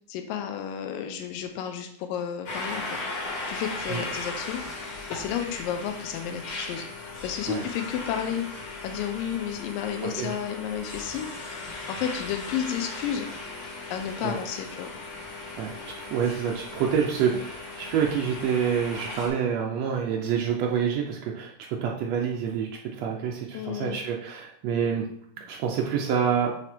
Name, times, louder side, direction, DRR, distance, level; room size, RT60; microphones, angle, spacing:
voice 1, 0.1-13.3 13.9-14.9 17.3-17.4 23.5-24.0, left 9 dB, 85° left, 6 dB, 2.4 m, -32 dB
sound 1, 2.5-19.3, left 3 dB, 70° left, 4.4 m, -37 dB
voice 2, 10.0-10.4 14.2-14.4 15.6-25.0 25.5-26.5, right 7 dB, 85° right, -1 dB, 1.5 m, -27 dB
8.6 x 3.5 x 4.5 m, 0.65 s
omnidirectional pair, 4.0 m